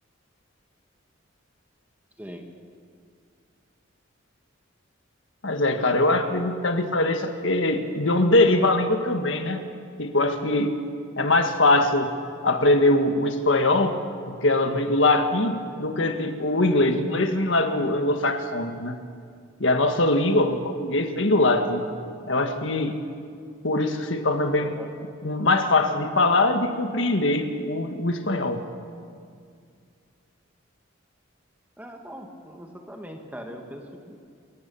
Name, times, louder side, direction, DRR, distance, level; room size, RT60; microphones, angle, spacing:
voice 1, 5.4-9.6 10.0-10.7 11.2-12.1 12.4-14.0 14.3-19.0 19.6-21.8 22.3-22.9 23.6-24.7 25.2-28.6, left 2 dB, 70° left, 6 dB, 1.6 m, -22 dB
voice 2, 24.6-24.9 31.8-34.2, equal, 10° right, 3 dB, 1.5 m, -40 dB
27.5 x 14.5 x 7.0 m, 2.2 s
head